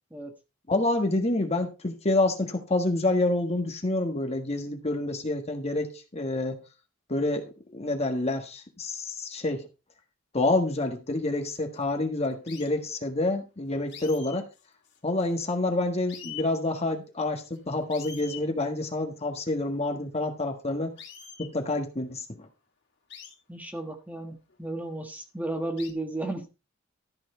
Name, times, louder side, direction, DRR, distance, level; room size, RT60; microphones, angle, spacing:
voice 1, 0.7-6.6 7.1-9.7 10.3-14.5 15.0-20.9 21.4-22.5, left 2 dB, 30° left, 1.6 m, -28 dB
sound 1, 11.5-11.8 12.5-12.7 13.9-15.5 15.8-15.9 16.1-16.5 17.5-17.6 17.9-18.5 21.0-21.5 23.1-23.3 24.5-24.6 25.8-25.9, left 8 dB, 55° left, 2.7 m, -44 dB
voice 2, 23.5-26.4, right 2 dB, 10° right, 1.5 m, -34 dB
13.5 x 6.1 x 4.4 m
head